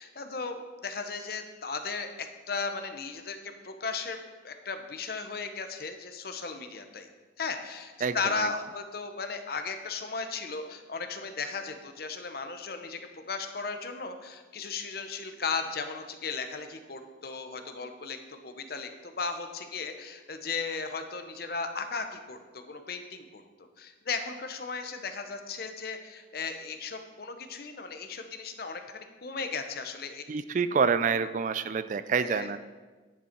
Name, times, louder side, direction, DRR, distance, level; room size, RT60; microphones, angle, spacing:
voice 1, 0.0-7.1 7.4-30.2 32.2-32.5, left 4 dB, 55° left, 7 dB, 0.8 m, -36 dB
voice 2, 8.0-8.5 30.3-32.6, right 5 dB, 45° right, 13 dB, 0.3 m, -27 dB
10.0 x 6.9 x 4.5 m, 1.3 s
head